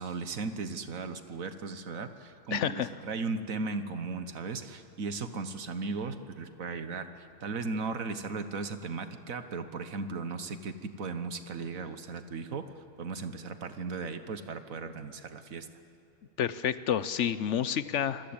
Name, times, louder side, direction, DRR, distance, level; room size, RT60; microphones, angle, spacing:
voice 1, 0.0-15.7, right 4 dB, 85° right, 9 dB, 1.7 m, -37 dB
voice 2, 2.5-2.9 16.4-18.3, left 9 dB, 65° left, 14 dB, 1.0 m, -29 dB
26.0 x 20.5 x 8.8 m, 2.5 s
omnidirectional pair, 1.4 m